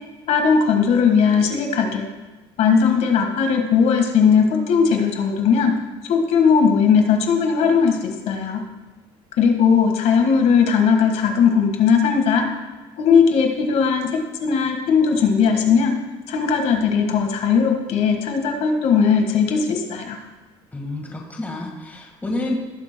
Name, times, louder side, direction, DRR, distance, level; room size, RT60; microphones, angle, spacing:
voice 1, 0.3-2.1 2.6-5.8 6.1-8.6 9.4-12.5 13.0-14.1 14.4-15.9 16.3-20.2, left 6 dB, 65° left, 3 dB, 1.7 m, -18 dB
voice 2, 20.7-22.6, left 2 dB, 15° left, 0 dB, 1.7 m, -29 dB
18.5 x 7.1 x 2.3 m, 1.2 s
cardioid pair, 125°, 13 cm